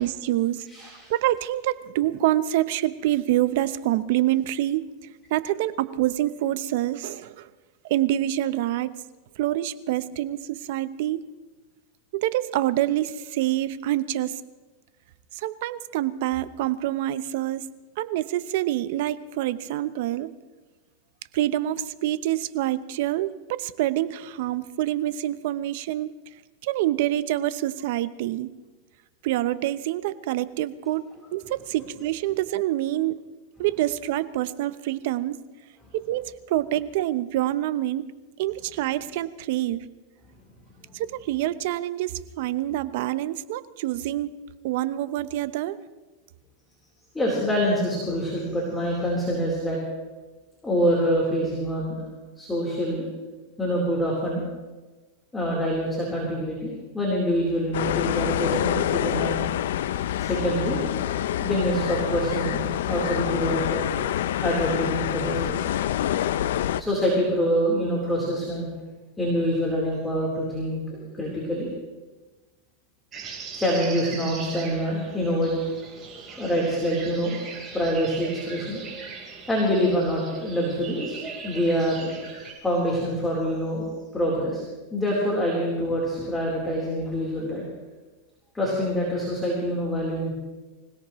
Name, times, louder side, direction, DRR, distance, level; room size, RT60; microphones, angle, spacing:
voice 1, 0.0-0.7 1.1-4.8 5.3-7.5 7.8-8.9 9.4-11.2 12.1-14.3 15.4-17.6 18.0-20.3 21.3-26.1 26.6-28.5 29.2-31.0 31.3-33.2 33.6-35.4 35.9-38.0 38.4-39.8 40.9-44.3 44.6-45.8, right 14 dB, 60° right, 15 dB, 0.8 m, -26 dB
voice 2, 0.7-1.1 47.1-49.8 50.6-52.0 52.4-53.1 53.6-54.4 55.3-59.3 60.2-60.8 61.4-62.6 62.9-63.8 64.4-65.6 66.7-68.7 69.2-71.7 73.6-75.5 76.1-77.4 77.7-78.8 79.5-81.2 81.4-82.1 82.6-83.9 84.1-84.6 84.9-87.7 88.5-90.3, equal, 10° left, -4 dB, 3.9 m, -25 dB
sound 1, 57.7-66.8, left 11 dB, 80° left, 0.5 m, -26 dB
sound 2, 73.1-82.5, right 5 dB, 30° right, 4.3 m, -40 dB
25.5 x 17.0 x 3.1 m, 1.2 s
supercardioid pair, 140°, 0 cm